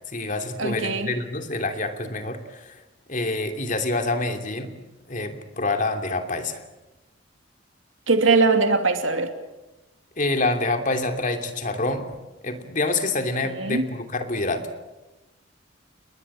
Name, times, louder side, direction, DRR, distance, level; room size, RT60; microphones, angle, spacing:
voice 1, 0.1-2.8 3.1-4.7 5.1-6.6 10.2-12.1 12.4-14.8, left 2 dB, 40° left, 6 dB, 2.8 m, -27 dB
voice 2, 0.6-1.1 8.1-9.3 13.4-13.9, right 4 dB, 75° right, 7 dB, 2.7 m, -21 dB
29.5 x 21.0 x 8.6 m, 1.0 s
head